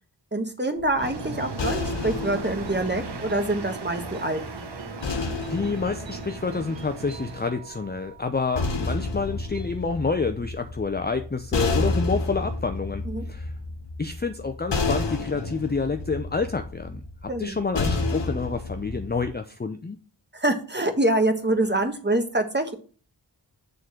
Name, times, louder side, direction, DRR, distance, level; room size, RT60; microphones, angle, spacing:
voice 1, 0.3-4.7 13.0-13.2 17.3-17.6 20.3-22.8, right 2 dB, 25° right, 6 dB, 1.5 m, -25 dB
sound 1, 0.8-4.1 5.0-7.3 8.2-19.3, left 3 dB, 70° left, 1.3 m, -31 dB
sound 2, 0.9-9.8, right 4 dB, 80° right, 1.3 m, -43 dB
sound 3, 1.0-7.5, right 4 dB, 65° right, 1.0 m, -38 dB
voice 2, 5.5-13.5 14.0-20.0, left 4 dB, 20° left, 7 dB, 0.6 m, -28 dB
7.0 x 3.9 x 6.4 m, 0.40 s
wide cardioid pair, 45°, 44 cm